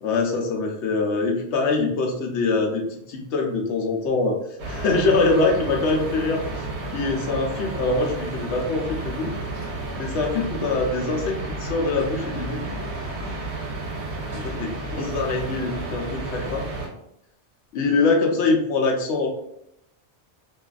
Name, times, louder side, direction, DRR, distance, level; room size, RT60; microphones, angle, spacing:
voice 1, 0.0-4.4 4.7-6.6 6.9-9.3 10.0-12.6 14.6-14.7 15.0-16.6 17.7-19.3, left 3 dB, 80° left, 1 dB, 0.9 m, -23 dB
sound 1, 4.6-16.9, right 2 dB, 75° right, 1.0 m, -32 dB
2.5 x 2.4 x 2.3 m, 0.77 s
omnidirectional pair, 1.2 m